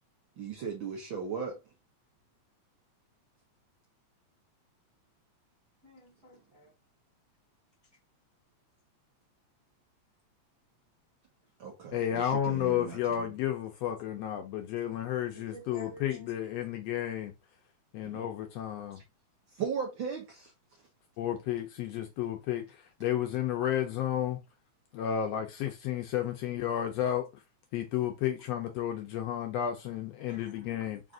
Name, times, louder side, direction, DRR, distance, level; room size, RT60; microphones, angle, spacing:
voice 1, 0.4-1.6 11.6-13.3 18.1-18.2 19.5-20.5, right 6 dB, 75° right, 1.1 m, -37 dB
voice 2, 5.8-6.7 15.3-16.3 30.3-31.1, right 1 dB, 45° right, 0.8 m, -52 dB
voice 3, 11.9-17.3 17.9-19.0 21.2-24.4 24.9-27.4 27.7-31.0, left 10 dB, 75° left, 1.5 m, -32 dB
4.8 x 2.5 x 3.7 m
omnidirectional pair, 3.4 m